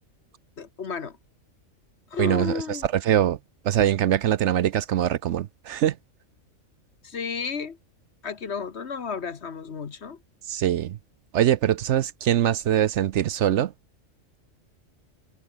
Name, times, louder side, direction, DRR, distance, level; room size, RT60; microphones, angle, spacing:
voice 1, 0.6-1.2 2.1-2.9 7.0-7.8 8.2-10.2, left 6 dB, 55° left, 1.6 m, -32 dB
voice 2, 2.2-2.8 3.1-3.4 3.7-5.9 10.5-11.0 11.3-13.7, right 11 dB, 70° right, 0.9 m, -23 dB
omnidirectional pair, 1.4 m